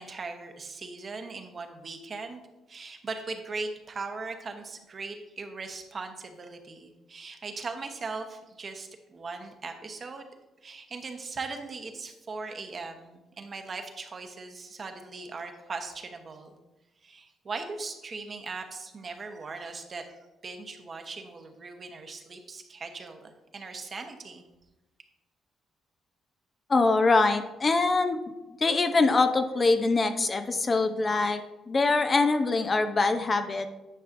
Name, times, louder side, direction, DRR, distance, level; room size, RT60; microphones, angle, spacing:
voice 1, 0.0-2.4 2.7-10.3 10.6-16.5 17.0-24.4, right 4 dB, 40° right, 5 dB, 1.0 m, -39 dB
voice 2, 26.7-28.2 28.6-33.7, left 3 dB, 35° left, 8 dB, 0.6 m, -24 dB
10.0 x 5.6 x 2.6 m, 1.0 s
cardioid pair, 90°, 0 cm